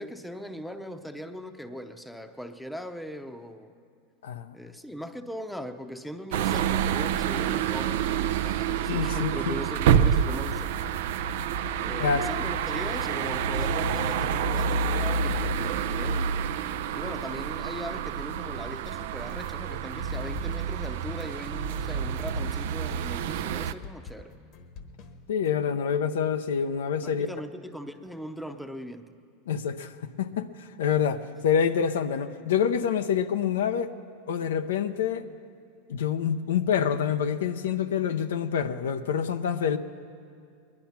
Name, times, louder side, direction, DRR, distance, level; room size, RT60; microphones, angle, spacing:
voice 1, 0.0-3.7 4.5-11.2 11.8-16.5 16.9-24.3 27.0-29.1, equal, ahead, 0.7 m, -39 dB
voice 2, 4.2-4.5 8.9-9.5 12.0-12.3 25.3-27.3 29.5-33.9 34.3-35.3 35.9-39.8, left 7 dB, 85° left, 0.6 m, -27 dB
sound 1, 6.3-23.7, right 7 dB, 70° right, 0.5 m, -28 dB
sound 2, 19.7-25.6, left 3 dB, 55° left, 1.2 m, -47 dB
20.5 x 10.5 x 5.8 m
hypercardioid pair, 110°, 0 cm